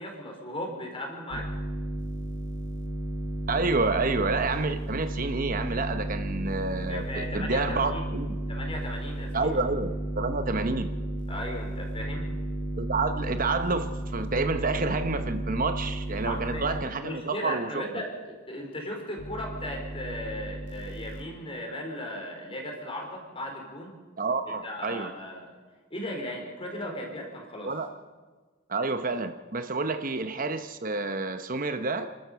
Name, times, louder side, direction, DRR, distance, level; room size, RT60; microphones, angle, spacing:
voice 1, 0.0-1.5 6.9-8.0 8.5-9.6 11.3-12.3 16.2-24.0 24.6-25.5 25.9-27.7, left 1 dB, 30° left, 1 dB, 4.6 m, -37 dB
sound 1, 1.3-16.8 19.2-21.2, right 1 dB, 60° left, 2.6 m, -33 dB
voice 2, 3.5-8.4 9.3-10.9 12.8-17.8 24.2-25.1 27.7-27.9 28.7-32.1, right 3 dB, 45° right, 9 dB, 0.9 m, -29 dB
29.0 x 13.0 x 6.9 m, 1.4 s
head